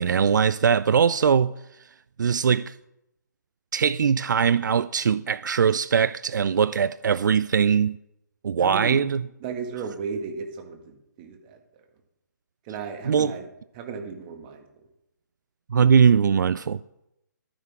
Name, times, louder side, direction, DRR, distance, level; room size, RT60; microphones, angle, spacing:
voice 1, 0.0-1.5 2.2-2.7 3.7-8.0 8.4-9.2 13.1-13.3 15.7-16.8, right 7 dB, 75° right, 0.4 m, -21 dB
voice 2, 8.6-9.0 9.4-11.6 12.6-13.5 13.7-14.7, right 5 dB, 30° right, 1.8 m, -34 dB
12.0 x 9.8 x 3.6 m
hypercardioid pair, 150°, 10 cm